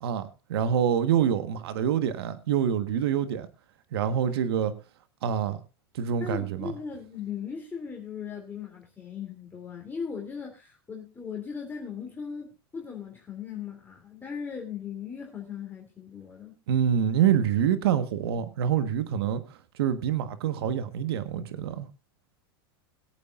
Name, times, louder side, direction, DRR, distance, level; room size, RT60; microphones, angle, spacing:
voice 1, 0.0-3.5 3.9-4.7 5.2-5.6 5.9-6.7 16.7-19.4 19.7-21.9, right 9 dB, 80° right, 1.4 m, -26 dB
voice 2, 6.2-16.5, left 6 dB, 15° left, 3.0 m, -38 dB
22.0 x 8.7 x 2.5 m
supercardioid pair, 130°, 13 cm